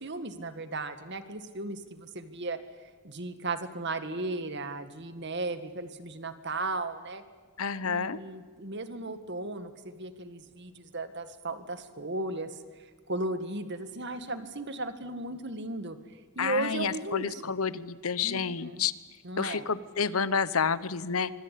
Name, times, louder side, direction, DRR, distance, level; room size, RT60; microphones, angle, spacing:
voice 1, 0.0-2.6 3.0-7.2 7.8-16.0 16.4-17.4 18.2-18.9 19.2-19.6, right 2 dB, 50° right, 10 dB, 1.9 m, -36 dB
voice 2, 7.6-8.2 16.4-18.9 19.4-21.3, left 6 dB, 75° left, 16 dB, 1.0 m, -29 dB
24.5 x 24.5 x 8.5 m, 1.5 s
head